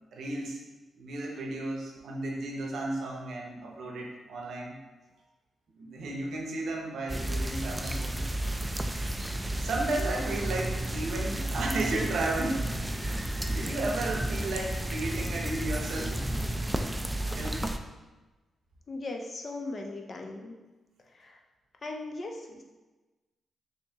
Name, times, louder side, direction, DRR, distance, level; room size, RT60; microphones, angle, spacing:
voice 1, 0.1-0.6 1.0-4.8 5.8-8.2 9.0-16.2 17.3-17.7, right 2 dB, 75° right, 0 dB, 0.7 m, -34 dB
sound 1, 7.1-17.8, right 1 dB, 15° right, 0.3 m, -32 dB
voice 2, 18.9-20.6 21.2-21.4 21.8-22.6, left 2 dB, 45° left, 2 dB, 0.5 m, -38 dB
4.3 x 2.7 x 2.8 m, 1.2 s
cardioid pair, 75°, 0 cm